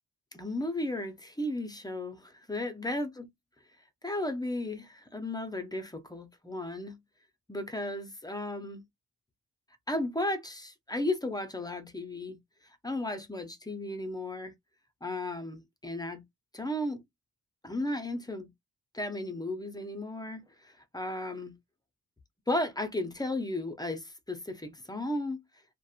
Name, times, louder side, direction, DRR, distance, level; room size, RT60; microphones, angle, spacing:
voice 1, 0.3-3.3 4.0-7.0 7.5-8.8 9.9-12.4 12.8-14.5 15.0-16.2 16.5-17.0 17.6-18.5 18.9-21.6 22.5-25.4, left 1 dB, 10° left, 0.4 m, -34 dB
2.8 x 2.1 x 2.3 m
cardioid pair, 85°, 41 cm